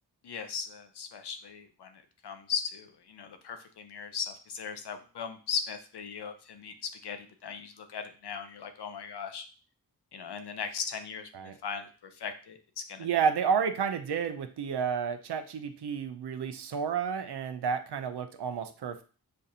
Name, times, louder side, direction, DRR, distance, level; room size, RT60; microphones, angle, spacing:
voice 1, 0.2-9.4 10.1-13.1, left 6 dB, 85° left, 7 dB, 0.7 m, -38 dB
voice 2, 13.0-19.0, right 6 dB, 85° right, 8 dB, 0.6 m, -31 dB
6.5 x 2.5 x 2.7 m, 0.37 s
cardioid pair, 55°, 39 cm